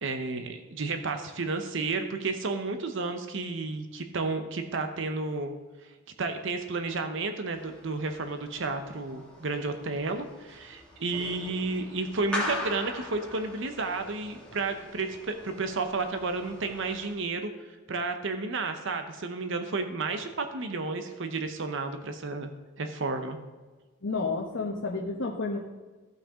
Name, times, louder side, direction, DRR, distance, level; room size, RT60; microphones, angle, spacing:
voice 1, 0.0-5.5 6.2-17.5 17.9-22.5 22.8-23.4, right 3 dB, 65° right, 6 dB, 0.8 m, -32 dB
sound 1, 7.5-17.1, left 1 dB, 5° left, 2.0 m, -41 dB
voice 2, 24.0-25.6, left 3 dB, 70° left, -3 dB, 1.1 m, -30 dB
15.0 x 5.7 x 3.7 m, 1.3 s
head